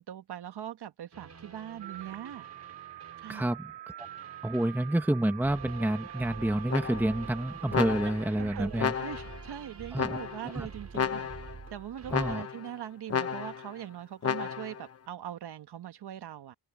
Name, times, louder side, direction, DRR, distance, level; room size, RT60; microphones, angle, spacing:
voice 1, 0.0-2.5 3.2-3.5 8.3-16.5, right 10 dB, 70° right, 1.7 m, -42 dB
sound 1, 1.1-3.6 4.0-12.4, right 5 dB, 40° right, 5.0 m, -47 dB
sound 2, 1.8-8.7, right 13 dB, 90° right, 5.8 m, -46 dB
voice 2, 3.3-3.7 4.4-8.9 9.9-10.2 10.5-10.7 12.1-12.4, right 1 dB, 5° right, 1.4 m, -28 dB
sound 3, 6.7-7.2 7.7-8.4 8.8-9.4 10.0-10.5 10.9-11.6 12.1-12.7 13.1-13.7 14.2-14.8, left 7 dB, 35° left, 1.1 m, -32 dB
open air
wide cardioid pair, 135°, 41 cm